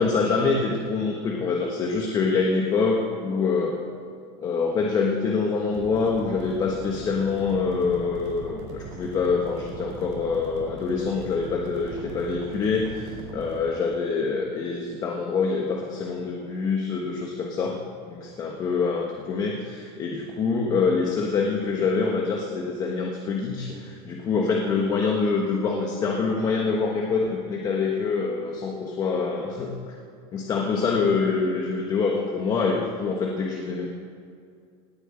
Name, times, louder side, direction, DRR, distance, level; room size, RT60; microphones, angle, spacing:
voice 1, 0.0-3.8 4.4-17.8 18.0-29.8 30.3-33.9, left 4 dB, 25° left, 1 dB, 1.3 m, -25 dB
sound 1, 5.7-13.6, right 3 dB, 85° right, 5.0 m, -40 dB
18.5 x 7.7 x 8.8 m, 2.3 s
cardioid pair, 170°, 15 cm